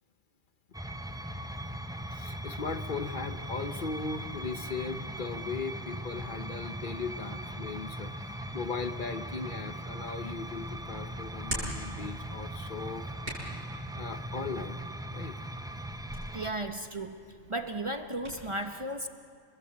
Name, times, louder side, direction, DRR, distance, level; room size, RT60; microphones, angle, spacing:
sound 1, 0.7-16.5, right 1 dB, 5° right, 0.6 m, -39 dB
voice 1, 2.1-13.1 13.9-14.8 15.1-15.4, left 4 dB, 50° left, 8 dB, 1.0 m, -38 dB
Hands, 10.0-18.4, right 1 dB, 50° right, 8.1 m, -44 dB
voice 2, 16.3-17.2 17.5-19.1, right 1 dB, 30° right, 6 dB, 0.9 m, -35 dB
29.5 x 20.5 x 8.5 m, 2.2 s
omnidirectional pair, 1.2 m